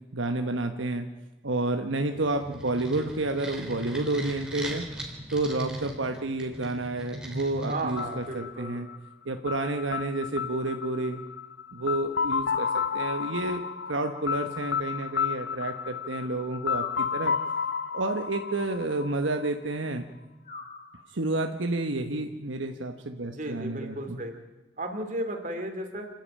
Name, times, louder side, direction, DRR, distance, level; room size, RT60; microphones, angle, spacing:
voice 1, 0.1-1.1 1.4-4.8 5.3-8.9 9.2-11.2 11.7-12.7 12.9-17.3 17.9-20.0 21.1-24.2, right 2 dB, 80° right, 5 dB, 1.2 m, -30 dB
sound 1, 2.1-8.4, right 1 dB, 5° right, 3.1 m, -38 dB
voice 2, 7.7-8.8 23.3-24.3 24.8-26.1, right 1 dB, 40° right, 5 dB, 2.9 m, -34 dB
sound 2, 8.0-19.7, left 6 dB, 60° left, 0.6 m, -32 dB
sound 3, 8.5-9.4 12.5-13.5 16.7-17.8 20.4-21.4, left 3 dB, 35° left, 2.3 m, -45 dB
29.0 x 11.0 x 8.8 m, 1.1 s
head